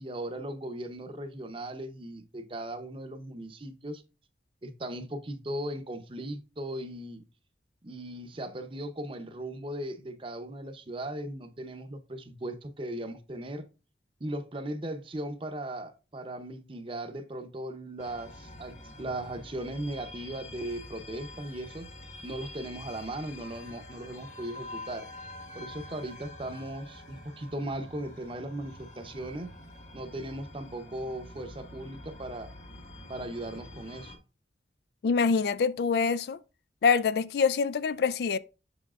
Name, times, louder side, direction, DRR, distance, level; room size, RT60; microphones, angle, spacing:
voice 1, 0.0-4.0 4.6-7.2 7.8-13.6 14.2-21.9 22.2-25.1 25.5-29.5 29.9-32.5 33.1-34.1, right 1 dB, 30° right, 0.7 m, -38 dB
sound 1, 18.0-34.2, left 1 dB, 45° left, 1.2 m, -46 dB
voice 2, 35.0-36.4 36.8-38.4, left 5 dB, 60° left, 0.3 m, -25 dB
7.0 x 6.5 x 2.4 m
head